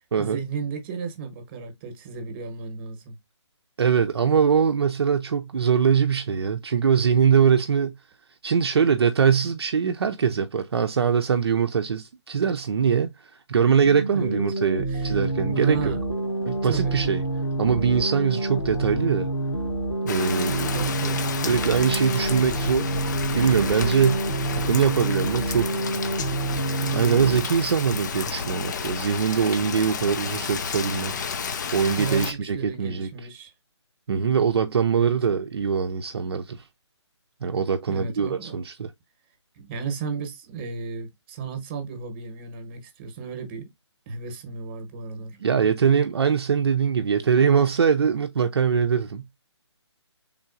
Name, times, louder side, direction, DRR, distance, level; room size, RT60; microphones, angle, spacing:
voice 1, 0.2-3.2 14.1-14.4 14.9-15.2 15.5-16.0 16.7-17.0 20.6-21.4 32.0-33.5 35.0-35.1 37.9-38.6 39.5-43.7 44.1-45.4, right 5 dB, 25° right, 1.0 m, -33 dB
voice 2, 3.8-8.0 8.4-13.1 13.5-15.9 16.5-17.2 17.6-19.3 20.0-20.8 21.5-22.9 23.3-24.2 24.6-25.8 26.8-31.1 31.7-33.1 34.1-36.6 37.4-38.9 45.4-49.2, right 7 dB, 60° right, 0.6 m, -22 dB
sound 1, 13.8-27.4, right 2 dB, 80° left, 1.6 m, -28 dB
Rain, 20.1-32.3, left 5 dB, 40° left, 0.5 m, -31 dB
4.5 x 3.7 x 2.5 m
figure-of-eight pair, 150°, 15 cm